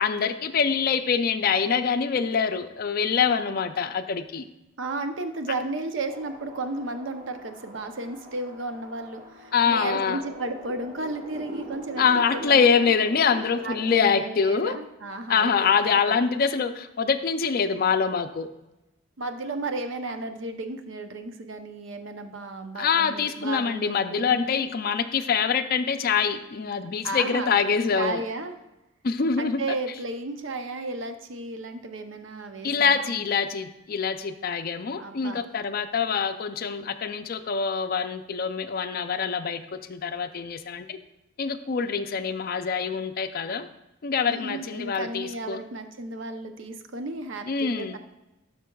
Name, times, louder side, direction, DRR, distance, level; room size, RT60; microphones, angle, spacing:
voice 1, 0.0-4.5 9.5-10.2 12.0-14.8 15.3-18.5 22.8-28.2 29.0-29.6 32.6-41.0 41.4-43.7 44.0-45.6 47.5-48.0, left 6 dB, 45° left, 9 dB, 0.4 m, -25 dB
voice 2, 4.8-12.9 13.6-16.2 19.2-24.6 27.0-27.5 27.9-28.6 29.4-33.2 35.0-35.4 44.3-48.0, right 2 dB, 65° right, 7 dB, 0.7 m, -34 dB
sound 1, 6.1-14.0, equal, 40° right, 1.1 m, -42 dB
12.0 x 5.8 x 2.3 m, 0.97 s
head